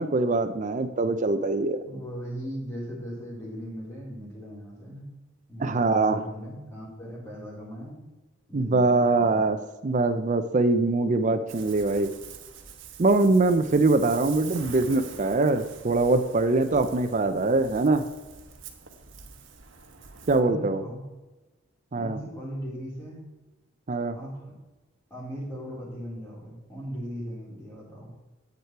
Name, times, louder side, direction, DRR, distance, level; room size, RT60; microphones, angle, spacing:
voice 1, 0.0-1.8 5.6-6.2 8.5-9.6 9.8-12.1 13.0-18.0 20.3-20.8 21.9-22.2 23.9-24.1, right 3 dB, 40° right, 9 dB, 0.5 m, -23 dB
voice 2, 1.8-5.1 5.5-8.1 8.5-9.4 20.4-21.0 21.9-23.3 24.1-24.5 25.1-28.1, equal, 15° left, -6 dB, 3.7 m, -38 dB
Ocean, 11.5-20.4, right 6 dB, 75° right, 1.1 m, -45 dB
9.6 x 8.1 x 4.5 m, 1.1 s
head